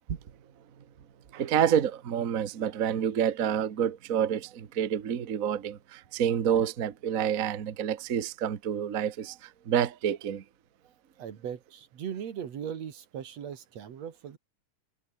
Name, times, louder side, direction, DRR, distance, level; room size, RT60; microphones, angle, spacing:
voice 1, 1.3-10.4, right 9 dB, 80° right, 0.7 m, -28 dB
voice 2, 11.2-14.4, right 8 dB, 60° right, 3.0 m, -38 dB
omnidirectional pair, 3.6 m